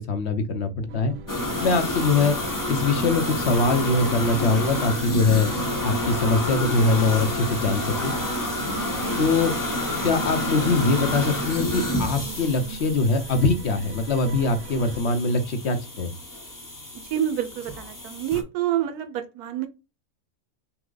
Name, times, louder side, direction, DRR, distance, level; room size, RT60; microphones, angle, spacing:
voice 1, 0.1-1.2 1.6-2.4 2.7-5.5 5.8-8.1 9.2-9.5 10.0-16.1, left 3 dB, 55° left, 0.9 m, -23 dB
sound 1, 0.9-15.0, right 7 dB, 70° right, 0.8 m, -38 dB
sound 2, 1.3-18.4, left 1 dB, 15° left, 0.7 m, -29 dB
voice 2, 17.1-19.7, right 11 dB, 85° right, 1.2 m, -27 dB
5.9 x 2.1 x 3.8 m
omnidirectional pair, 1.6 m